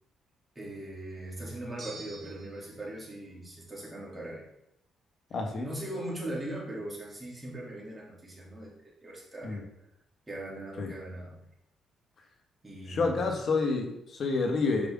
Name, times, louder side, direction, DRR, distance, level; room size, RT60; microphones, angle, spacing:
voice 1, 0.5-4.4 5.5-9.6 10.3-11.4 12.6-13.3, right 1 dB, 15° right, -4 dB, 3.2 m, -40 dB
sound 1, 1.8-2.7, right 3 dB, 40° right, 1.5 m, -46 dB
voice 2, 5.3-5.7 9.4-9.6 10.8-10.9 12.9-14.9, left 3 dB, 55° left, 3 dB, 1.7 m, -29 dB
8.1 x 5.5 x 3.8 m, 0.81 s
cardioid pair, 90°, 0 cm